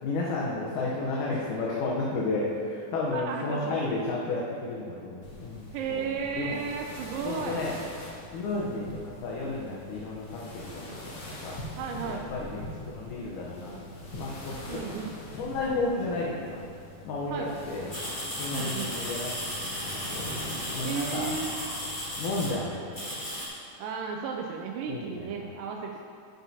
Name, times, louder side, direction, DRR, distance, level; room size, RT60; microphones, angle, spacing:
voice 1, 0.0-6.6 7.2-7.8 8.3-11.1 11.4-11.6 12.0-14.8 15.4-16.6 17.0-17.9 18.4-20.3 20.7-21.3 22.2-23.3 24.9-25.3, left 2 dB, 75° left, -4 dB, 2.2 m, -32 dB
voice 2, 3.1-3.9 5.7-7.6 8.5-8.7 11.8-12.3 14.7-15.2 17.3-17.7 18.5-19.0 20.8-21.6 23.8-26.0, right 6 dB, 85° right, 1 dB, 2.2 m, -34 dB
sound 1, 5.2-22.8, left 1 dB, 55° left, 1.8 m, -43 dB
sound 2, 17.9-22.5 22.9-23.5, equal, 20° left, 1.7 m, -35 dB
10.5 x 8.4 x 2.8 m, 2.3 s
omnidirectional pair, 3.9 m